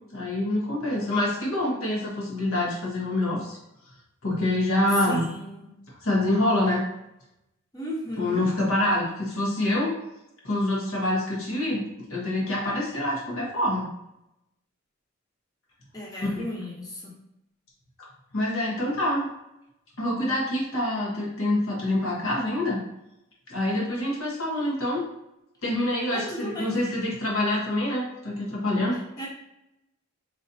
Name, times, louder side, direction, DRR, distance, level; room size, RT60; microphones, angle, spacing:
voice 1, 0.1-3.6 4.2-5.3 6.0-6.8 8.2-10.0 10.4-11.8 12.1-13.9 16.4-16.5 18.3-19.3 20.0-22.8 23.5-25.0 25.6-29.0, left 1 dB, 80° left, -3 dB, 1.2 m, -26 dB
voice 2, 5.1-5.7 7.7-8.5 15.9-17.1 26.1-26.8 29.2-29.3, equal, 15° left, -3 dB, 0.8 m, -35 dB
3.9 x 3.1 x 2.7 m, 0.87 s
head